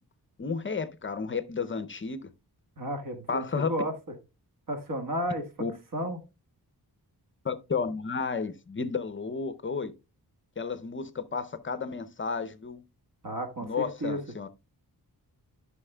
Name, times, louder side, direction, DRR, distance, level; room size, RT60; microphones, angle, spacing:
voice 1, 0.4-2.3 3.3-3.7 5.6-5.7 7.4-9.9 10.6-12.8 13.6-14.5, left 5 dB, 30° left, 0.6 m, -32 dB
voice 2, 2.8-3.9 4.7-5.4 5.9-6.2 13.2-14.2, right 1 dB, 55° right, 1.5 m, -32 dB
13.5 x 5.7 x 2.2 m
wide cardioid pair, 120°, 39 cm